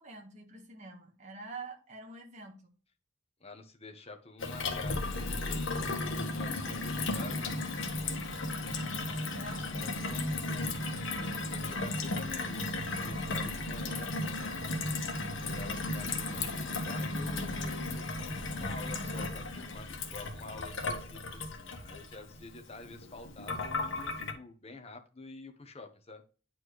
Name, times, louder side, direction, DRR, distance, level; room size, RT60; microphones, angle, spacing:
voice 1, 0.0-2.7 6.6-6.8 7.1-7.2 9.3-10.6, right 3 dB, 40° right, 2 dB, 1.6 m, -47 dB
voice 2, 3.4-5.7 6.3-7.6 9.8-10.5 11.5-14.2 15.5-26.2, left 3 dB, 35° left, 5 dB, 1.2 m, -48 dB
Gurgling / Water tap faucet / Sink (filling or washing), 4.4-24.3, left 2 dB, 85° left, 1.5 m, -35 dB
9.5 x 4.5 x 3.2 m, 0.37 s
head